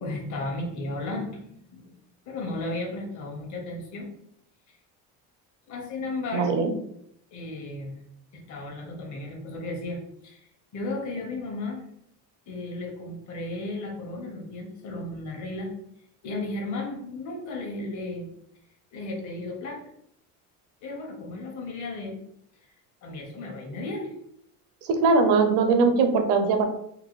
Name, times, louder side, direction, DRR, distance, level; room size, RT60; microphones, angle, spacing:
voice 1, 0.0-1.9 2.3-4.1 5.7-6.5 7.3-8.0 8.3-11.8 12.5-15.7 16.2-18.3 18.9-19.8 20.8-22.2 23.0-24.1, left 2 dB, 50° left, 1 dB, 1.0 m, -34 dB
voice 2, 6.3-6.7 24.8-26.6, right 4 dB, 80° right, 5 dB, 0.8 m, -21 dB
3.9 x 2.2 x 3.1 m, 0.71 s
cardioid pair, 150°, 39 cm